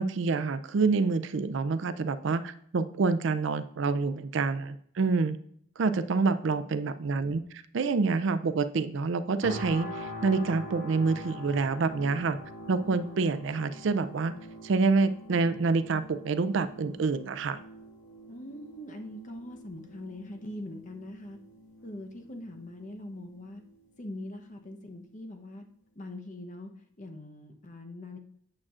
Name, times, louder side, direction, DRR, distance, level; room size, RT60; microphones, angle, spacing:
voice 1, 0.0-5.4 5.8-12.4 12.7-14.3 14.6-17.6, right 4 dB, 60° right, 12 dB, 0.4 m, -27 dB
sound 1, 9.4-24.4 24.9-25.1, equal, 85° left, 2.0 m, -45 dB
voice 2, 18.3-21.4 21.8-23.6 24.0-25.6 25.9-26.7 27.0-28.2, left 1 dB, 35° left, 4 dB, 0.8 m, -42 dB
8.6 x 7.4 x 2.5 m, 0.65 s
head